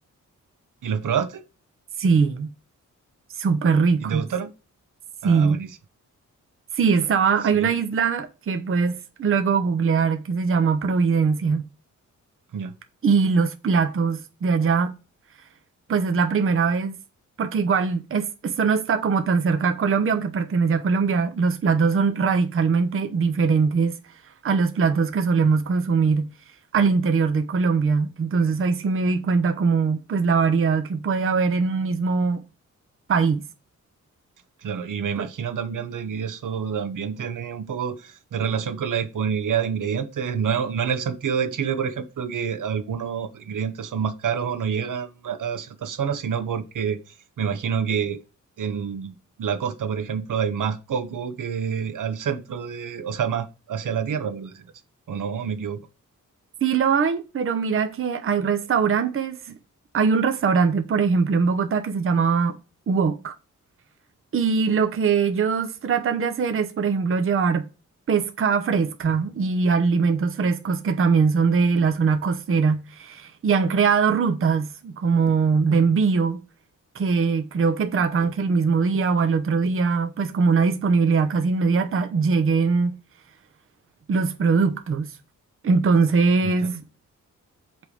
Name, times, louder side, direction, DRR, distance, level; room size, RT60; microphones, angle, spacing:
voice 1, 0.8-1.4 4.0-4.5 5.2-5.7 7.5-7.7 12.5-12.7 34.6-48.2 48.6-54.6 55.1-55.9 86.4-86.8, right 7 dB, 80° right, 1.1 m, -28 dB
voice 2, 2.0-2.5 3.4-4.3 5.2-5.6 6.7-11.6 13.0-14.9 15.9-17.0 17.4-23.9 24.4-26.3 26.7-32.4 33.1-33.4 35.2-35.3 56.6-59.6 59.9-62.6 62.9-63.3 64.3-67.7 68.1-76.4 76.9-83.0 84.1-85.1 85.6-86.8, right 5 dB, 45° right, 0.8 m, -21 dB
7.9 x 3.4 x 5.0 m
wide cardioid pair, 175°, 31 cm